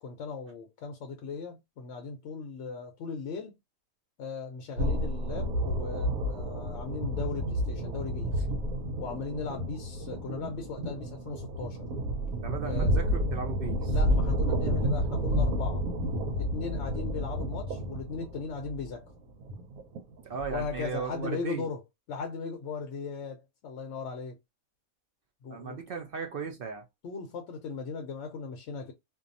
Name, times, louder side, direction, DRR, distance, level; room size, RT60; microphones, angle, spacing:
voice 1, 0.0-3.5 4.2-8.5 9.0-11.9 12.6-12.9 13.9-15.9 16.4-19.1 20.5-21.8 22.1-24.4 25.4-25.8 27.0-28.9, left 4 dB, 65° left, 0.8 m, -38 dB
sound 1, 4.8-20.9, equal, 80° right, 1.1 m, -30 dB
voice 2, 12.4-13.9 20.2-21.7 25.5-26.8, right 6 dB, 60° right, 0.6 m, -36 dB
2.6 x 2.2 x 2.5 m
omnidirectional pair, 1.5 m